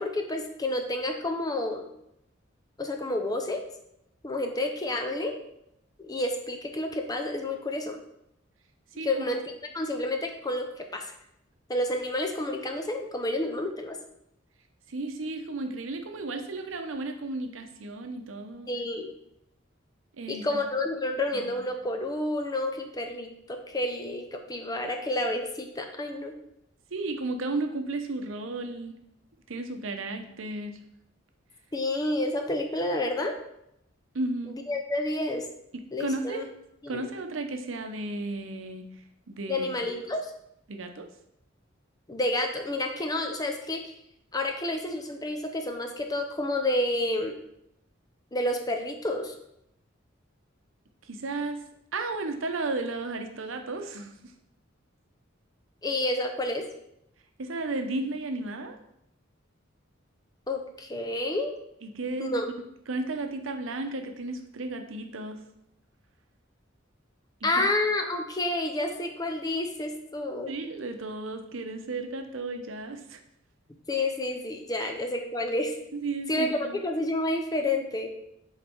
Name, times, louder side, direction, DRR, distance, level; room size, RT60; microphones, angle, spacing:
voice 1, 0.0-1.8 2.8-3.6 4.2-5.3 6.0-8.0 9.0-9.4 9.7-11.0 11.7-14.0 18.7-19.1 20.3-26.3 31.7-33.3 34.7-35.4 35.9-36.4 36.8-37.0 39.5-40.3 42.1-43.9 44.3-47.4 48.3-49.3 55.8-56.6 60.5-61.5 62.2-62.5 67.4-70.5 73.9-75.7 76.3-78.1, left 1 dB, 20° left, 4 dB, 0.6 m, -29 dB
voice 2, 14.9-18.7 20.2-20.6 21.4-21.5 26.9-29.0 29.5-30.8 34.1-34.6 35.7-36.5 36.9-38.8 39.3-39.7 40.7-41.1 51.0-51.6 51.9-54.3 57.4-58.8 61.8-62.4 62.9-65.4 67.6-67.7 70.5-73.2 74.8-74.9 76.0-76.7, right 2 dB, 80° right, 6 dB, 0.7 m, -34 dB
5.3 x 4.0 x 4.5 m, 0.78 s
head